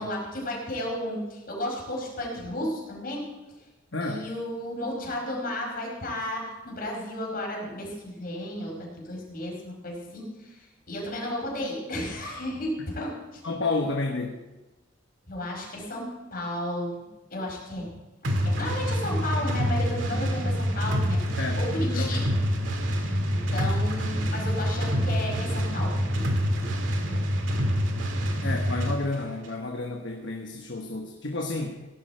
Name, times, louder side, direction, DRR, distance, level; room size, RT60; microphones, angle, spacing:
voice 1, 0.0-3.3 4.0-13.4 15.3-17.0 17.3-17.9 18.2-21.2 21.6-22.4 23.3-27.3, left 1 dB, 50° left, -2 dB, 5.3 m, -33 dB
voice 2, 3.9-4.2 13.4-14.4 21.4-21.6 21.9-22.2 28.4-31.8, left 2 dB, 65° left, 2 dB, 1.3 m, -30 dB
sound 1, 18.2-29.0, equal, 80° right, 2.0 m, -26 dB
17.5 x 11.0 x 4.5 m, 1.1 s
head